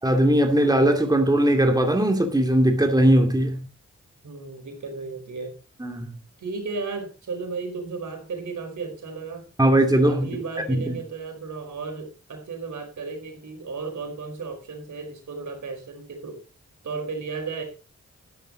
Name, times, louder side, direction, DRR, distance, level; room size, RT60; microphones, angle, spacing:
voice 1, 0.0-3.7 5.8-6.1 9.6-10.4 10.7-10.9, right 1 dB, 15° right, 2.5 m, -19 dB
voice 2, 4.2-5.6 6.4-9.5 10.1-16.4 16.8-17.6, right 4 dB, 75° right, 4.7 m, -34 dB
12.5 x 10.5 x 4.0 m
cardioid pair, 55°, 30 cm